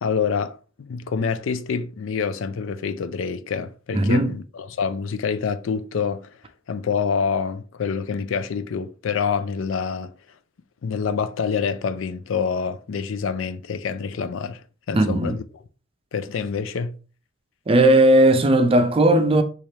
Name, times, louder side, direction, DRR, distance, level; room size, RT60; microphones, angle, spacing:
voice 1, 0.0-6.3 6.7-10.1 10.8-15.4 16.1-17.0, left 6 dB, 75° left, 0.4 m, -26 dB
voice 2, 3.9-4.3 14.9-15.4 17.7-19.4, right 1 dB, 30° right, 0.4 m, -16 dB
3.2 x 2.4 x 4.0 m
head